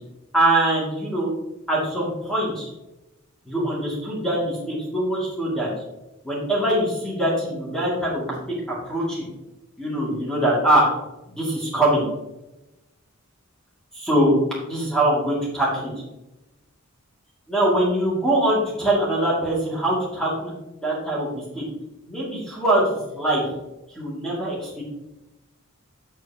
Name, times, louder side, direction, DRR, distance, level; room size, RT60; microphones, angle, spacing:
voice 1, 0.3-1.3 1.7-2.7 3.4-5.7 6.2-9.3 9.8-10.9 11.3-12.0 13.9-14.3 14.7-15.9 17.5-20.5 20.8-21.6 22.1-23.4 23.9-24.8, right 1 dB, 5° left, -6 dB, 2.5 m, -23 dB
8.3 x 6.9 x 2.9 m, 0.96 s
head